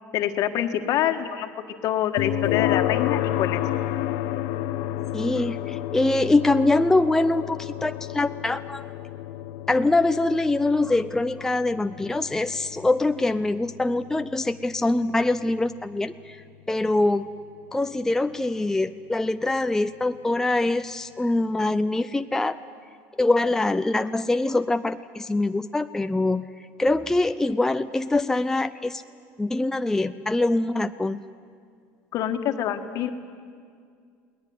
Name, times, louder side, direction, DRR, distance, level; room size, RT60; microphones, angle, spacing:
voice 1, 0.1-1.5 1.8-3.6 32.1-33.1, left 10 dB, 60° left, 7 dB, 1.6 m, -25 dB
sound 1, 2.2-17.1, left 13 dB, 75° left, 0.8 m, -31 dB
voice 2, 5.1-8.8 9.7-17.3 17.7-22.6 23.2-26.5 26.8-29.0 29.4-31.2, left 2 dB, 5° left, 9 dB, 0.5 m, -24 dB
21.5 x 18.5 x 9.6 m, 2.2 s
supercardioid pair, 105°, 7 cm